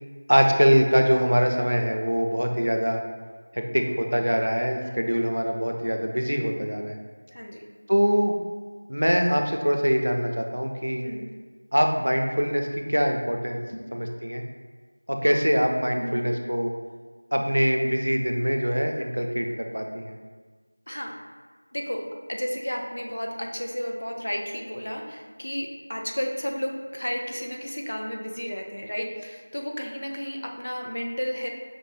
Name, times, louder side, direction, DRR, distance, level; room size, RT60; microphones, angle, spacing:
voice 1, 0.3-3.0 3.5-7.0 7.9-8.4 8.9-11.1 11.7-13.6 13.9-14.4 15.1-16.7 17.3-20.2, equal, 70° right, 3 dB, 0.5 m, -23 dB
voice 2, 7.3-7.7 11.0-11.4 15.9-16.4 20.9-21.2 21.7-22.0 22.3-31.5, equal, 40° left, 1 dB, 0.4 m, -32 dB
5.1 x 2.1 x 3.1 m, 1.5 s
figure-of-eight pair, 180°, 0 cm